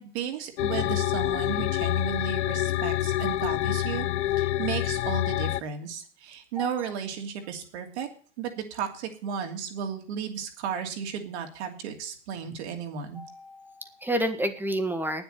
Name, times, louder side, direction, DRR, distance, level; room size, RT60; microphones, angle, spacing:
voice 1, 0.0-4.1 4.4-8.1 8.4-13.2, right 7 dB, 70° right, 5 dB, 2.9 m, -34 dB
sound 1, 0.6-5.6, left 14 dB, 85° left, 0.5 m, -27 dB
voice 2, 13.2-15.2, right 1 dB, 5° right, 7 dB, 1.8 m, -30 dB
9.5 x 8.0 x 9.2 m, 0.43 s
hypercardioid pair, 105°, 35 cm